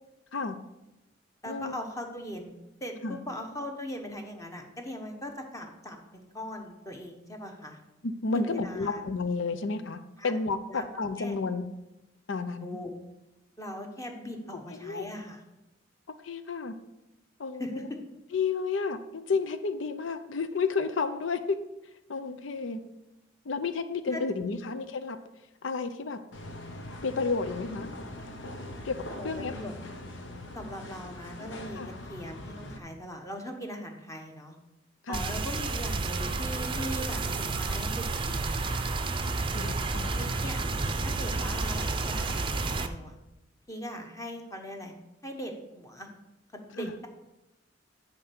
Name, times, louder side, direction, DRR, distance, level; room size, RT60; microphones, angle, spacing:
voice 1, 1.4-2.5 2.8-7.8 8.3-9.0 10.2-10.4 10.7-10.9 11.2-11.4 12.6-12.9 13.6-15.4 17.6-17.8 24.1-24.6 29.1-29.7 30.5-34.6 35.1-38.4 40.1-40.6 41.0-43.1 43.7-44.9 45.2-46.1 46.5-47.1, equal, 15° left, 3 dB, 1.2 m, -40 dB
voice 2, 8.0-11.7 12.3-12.8 14.7-15.0 16.2-16.8 17.4-17.8 18.3-21.6 22.1-22.8 23.4-25.2 25.6-26.2 27.0-28.0 28.8-29.0 29.2-29.5 31.8-31.9 35.0-35.3 39.5-40.4 46.8-46.9, left 4 dB, 90° left, 11 dB, 0.6 m, -31 dB
sound 1, 26.3-32.8, left 1 dB, 70° left, 1.0 m, -42 dB
sound 2, 35.1-42.9, right 3 dB, 25° right, 0.6 m, -30 dB
10.0 x 4.6 x 5.9 m, 0.96 s
head